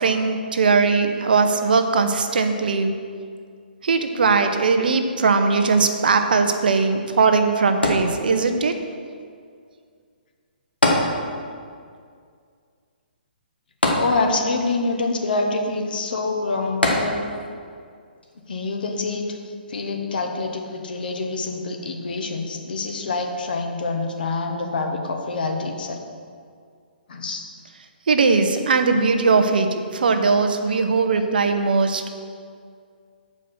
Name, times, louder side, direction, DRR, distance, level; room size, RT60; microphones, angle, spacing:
voice 1, 0.0-2.9 3.8-8.8 28.1-32.0, right 4 dB, 60° right, 7 dB, 0.7 m, -19 dB
sound 1, 7.8-8.7 10.8-11.7 12.0-12.1 13.8-14.7 16.8-17.5 18.2-18.3, left 1 dB, 90° left, 1.4 m, -22 dB
voice 2, 14.0-17.2 18.5-19.2 19.7-26.0 27.1-27.5, left 3 dB, 60° left, 3 dB, 1.1 m, -26 dB
7.8 x 5.0 x 5.9 m, 2.2 s
figure-of-eight pair, 130°, 5 cm